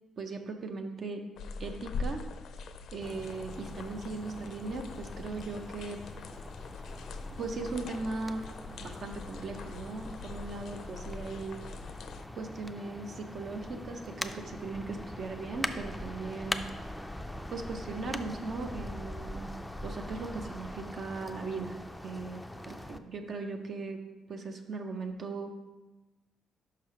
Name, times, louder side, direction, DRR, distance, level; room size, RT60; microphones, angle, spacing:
voice 1, 0.2-1.2 1.6-2.2 2.9-6.0 7.4-8.4 8.8-11.6 12.3-16.6 17.5-19.5 19.8-21.8 22.0-24.0 24.3-25.7, right 3 dB, 55° right, 4 dB, 0.7 m, -38 dB
sound 1, 1.4-12.3, left 4 dB, 70° left, 0.4 m, -43 dB
sound 2, 3.0-23.0, left 1 dB, 5° left, 0.4 m, -42 dB
5.7 x 4.8 x 4.8 m, 1.1 s
cardioid pair, 90°, 0 cm